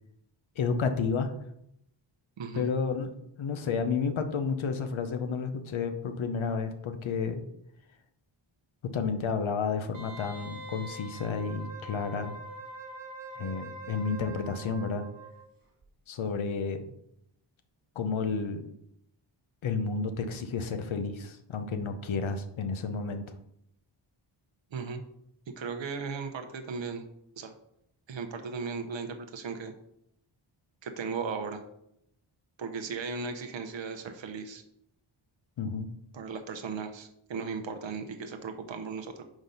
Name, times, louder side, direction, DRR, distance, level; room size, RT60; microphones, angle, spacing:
voice 1, 0.6-1.3 2.5-7.4 8.8-12.3 13.4-15.1 16.1-16.8 18.0-18.6 19.6-23.2 35.6-35.9, left 5 dB, 75° left, 8 dB, 0.8 m, -31 dB
voice 2, 2.4-2.7 24.7-25.0 25.6-27.0 27.4-27.5 28.1-29.7 30.8-31.6 32.6-34.6 36.1-39.2, right 5 dB, 65° right, 6 dB, 0.8 m, -36 dB
Wind instrument woodwind instrument, 9.9-15.5 15.8-15.9, right 2 dB, 45° right, 1.4 m, -44 dB
5.0 x 3.9 x 5.4 m, 0.77 s
wide cardioid pair, 110°, 48 cm